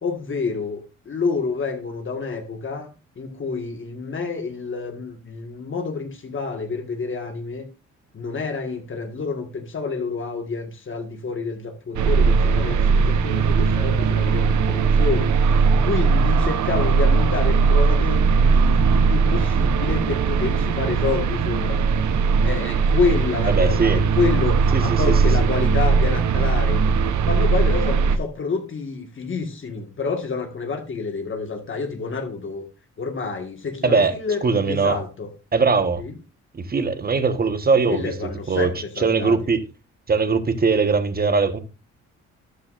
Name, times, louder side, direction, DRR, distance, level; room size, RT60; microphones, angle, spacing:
voice 1, 0.0-2.9 3.2-7.7 8.1-15.3 15.9-21.8 22.4-26.8 27.2-32.6 33.0-35.3 36.0-36.1 37.9-39.4, left 4 dB, 40° left, 1.8 m, -28 dB
sound 1, 12.0-28.2, right 5 dB, 70° right, 1.1 m, -19 dB
voice 2, 23.5-24.0 24.7-25.1 33.8-34.1 34.4-35.0 35.5-36.0 36.5-38.1 38.5-38.7 39.0-39.6 40.1-41.6, right 4 dB, 30° right, 1.4 m, -20 dB
13.0 x 9.5 x 2.6 m
cardioid pair, 90°, 30 cm